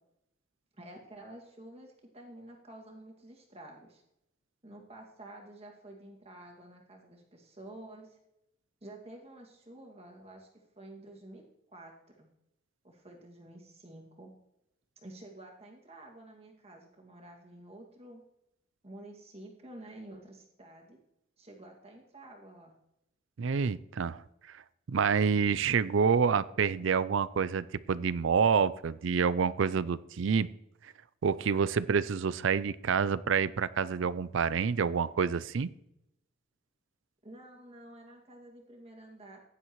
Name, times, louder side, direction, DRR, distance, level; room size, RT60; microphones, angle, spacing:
voice 1, 0.7-4.0 4.6-8.2 8.8-10.5 10.8-11.4 11.7-12.3 12.8-14.3 15.0-18.2 18.8-21.0 21.4-22.7 37.2-39.4, right 1 dB, 30° right, 0 dB, 2.1 m, -50 dB
voice 2, 23.4-24.2 24.5-24.6 24.9-30.5 31.2-35.7, right 6 dB, 70° right, 17 dB, 0.4 m, -28 dB
16.0 x 10.5 x 3.1 m, 0.82 s
head